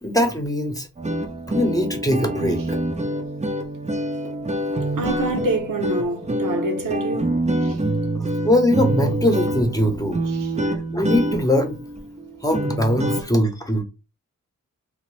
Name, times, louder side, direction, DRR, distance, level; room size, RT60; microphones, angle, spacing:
voice 1, 0.0-0.9 1.5-2.6 8.2-10.2 10.6-10.7 10.9-11.7 12.4-13.8, left 1 dB, 10° left, 0.8 m, -21 dB
sound 1, 1.0-13.2, right 1 dB, 20° right, 0.5 m, -26 dB
voice 2, 4.9-7.8 10.3-10.5, right 2 dB, 80° right, 0.7 m, -27 dB
2.7 x 2.0 x 3.1 m
wide cardioid pair, 60°, 32 cm